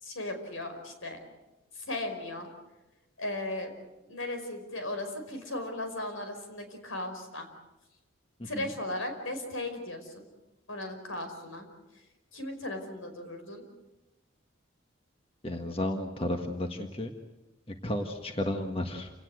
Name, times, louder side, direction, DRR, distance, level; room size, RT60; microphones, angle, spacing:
voice 1, 0.0-1.2 1.7-2.5 3.2-3.8 4.0-7.5 8.4-10.3 10.7-11.7 12.3-13.6, left 1 dB, 80° left, 6 dB, 5.2 m, -37 dB
voice 2, 15.4-17.1 17.7-19.1, left 1 dB, 25° left, 4 dB, 1.6 m, -33 dB
28.5 x 18.5 x 7.9 m, 1.0 s
head